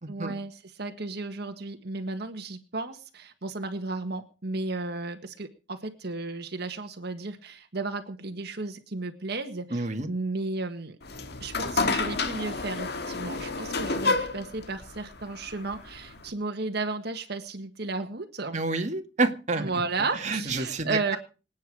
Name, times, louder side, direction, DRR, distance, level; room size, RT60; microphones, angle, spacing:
voice 1, 0.1-11.0 11.4-18.6 19.6-21.2, right 3 dB, 65° right, 6 dB, 1.7 m, -34 dB
voice 2, 9.7-10.1 18.5-19.7 20.2-21.2, right 3 dB, 40° right, 5 dB, 2.0 m, -28 dB
sound 1, 11.0-16.3, left 3 dB, 65° left, 1.9 m, -30 dB
26.5 x 9.5 x 4.9 m, 0.35 s
head